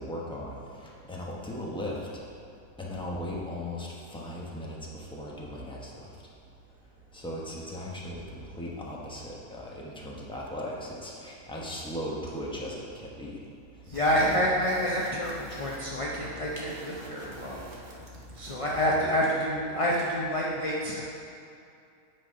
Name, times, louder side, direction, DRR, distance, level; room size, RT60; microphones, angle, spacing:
voice 1, 0.0-2.0 2.8-6.1 7.1-13.3 14.2-14.4 17.0-17.2 18.7-18.8, left 1 dB, 5° left, -4 dB, 0.8 m, -38 dB
voice 2, 13.9-17.6 18.3-21.0, equal, 35° left, -4 dB, 0.5 m, -28 dB
sound 1, 13.9-18.9, equal, 40° right, 1.1 m, -46 dB
8.9 x 4.2 x 5.1 m, 2.5 s
omnidirectional pair, 1.5 m